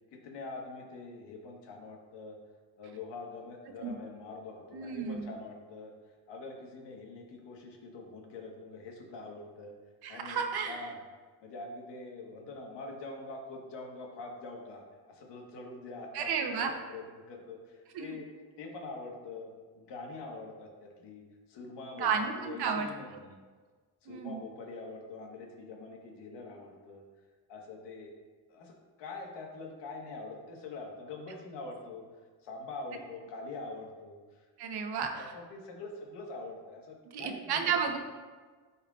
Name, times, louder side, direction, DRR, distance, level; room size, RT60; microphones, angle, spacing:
voice 1, 0.1-2.4 2.8-5.9 6.3-9.7 10.1-10.4 10.6-11.0 11.4-14.8 15.1-18.3 18.6-23.4 24.0-27.0 27.5-28.1 28.5-32.0 32.4-34.4 35.1-37.8, left 3 dB, 85° left, 1 dB, 1.5 m, -44 dB
voice 2, 4.7-5.3 10.0-10.8 16.1-16.7 17.9-18.2 21.9-22.9 24.1-24.4 34.6-35.3 37.1-38.0, right 6 dB, 65° right, 4 dB, 1.0 m, -32 dB
13.0 x 4.3 x 2.4 m, 1.4 s
cardioid pair, 115°, 41 cm